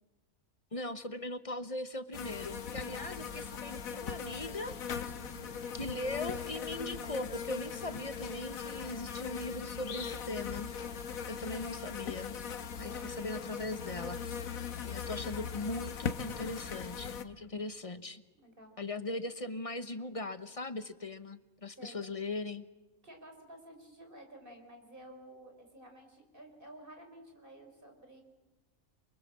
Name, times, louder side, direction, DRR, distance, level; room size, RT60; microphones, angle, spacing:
voice 1, 0.7-4.8 5.7-10.7 11.3-12.4 12.8-18.2 18.8-22.7, left 2 dB, 30° left, 11 dB, 0.9 m, -39 dB
sound 1, 2.1-17.2, left 7 dB, 75° left, 1.6 m, -40 dB
voice 2, 5.1-5.5 12.8-13.1 18.3-18.7 21.8-22.0 23.0-28.2, right 1 dB, 40° right, 4 dB, 4.8 m, -52 dB
28.5 x 24.0 x 7.5 m, 1.1 s
omnidirectional pair, 1.5 m